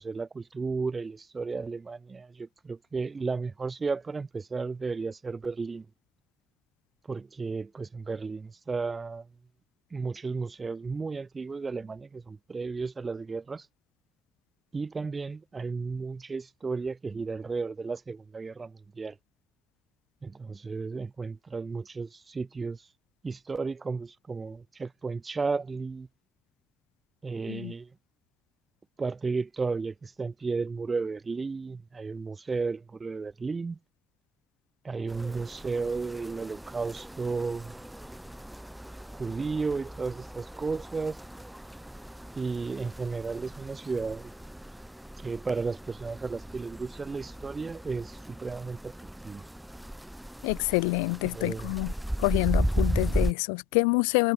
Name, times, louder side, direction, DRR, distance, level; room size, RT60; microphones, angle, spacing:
voice 1, 0.0-5.9 7.0-9.3 9.9-13.7 14.7-19.2 20.2-22.9 23.2-26.1 27.2-27.9 29.0-33.8 34.8-37.8 39.1-41.2 42.3-44.3 45.2-48.9 49.2-49.4 51.2-51.7, right 4 dB, 30° right, 6.5 m, -33 dB
sound 1, 35.1-53.3, right 1 dB, 5° right, 2.5 m, -36 dB
voice 2, 50.4-51.9 52.2-54.3, left 35 dB, 70° left, 2.1 m, -27 dB
figure-of-eight pair, 45°, 0 cm